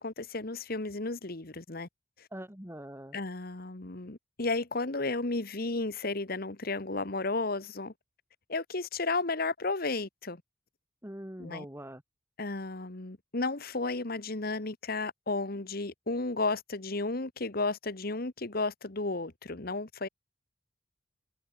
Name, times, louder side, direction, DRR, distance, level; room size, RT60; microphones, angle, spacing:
voice 1, 0.0-1.9 2.2-2.3 3.1-7.9 8.5-10.4 11.4-11.6 12.4-20.1, left 3 dB, 55° left, 1.6 m, -33 dB
voice 2, 2.3-3.2 11.0-12.0, right 1 dB, 15° right, 2.8 m, -43 dB
head